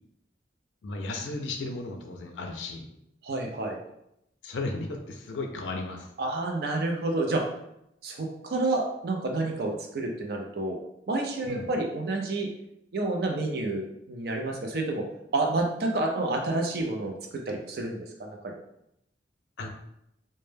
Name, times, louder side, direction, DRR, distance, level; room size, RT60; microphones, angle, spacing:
voice 1, 0.8-2.9 4.4-6.1 11.4-11.7 19.6-19.7, left 3 dB, 85° left, 3 dB, 0.4 m, -35 dB
voice 2, 3.2-3.8 6.2-7.5 8.0-10.8 11.1-12.5 12.9-15.1 15.3-17.1 17.5-18.5, right 2 dB, 55° right, 2 dB, 0.4 m, -29 dB
2.1 x 2.1 x 3.2 m, 0.81 s
head